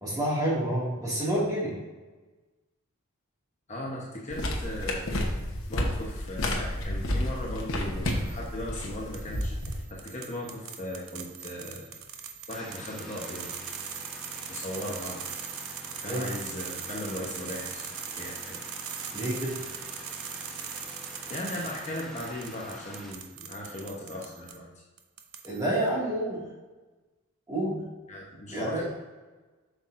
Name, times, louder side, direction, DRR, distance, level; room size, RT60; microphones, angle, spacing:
voice 1, 0.0-1.8 16.0-16.3 19.1-19.6 25.4-26.5 27.5-27.9 28.5-28.8, right 1 dB, 15° right, -6 dB, 2.1 m, -28 dB
voice 2, 3.7-5.1 5.7-9.5 9.9-11.9 12.5-13.5 14.5-15.3 16.0-18.6 21.3-24.7 28.1-28.8, left 1 dB, 30° left, -3 dB, 1.0 m, -37 dB
sound 1, 4.3-9.8, left 1 dB, 65° left, 1.0 m, -31 dB
sound 2, 8.1-8.5 9.1-24.6 25.0-25.7, right 7 dB, 75° right, 0.7 m, -40 dB
sound 3, 12.5-23.1, equal, ahead, 0.9 m, -46 dB
7.8 x 6.0 x 2.6 m, 1.2 s
head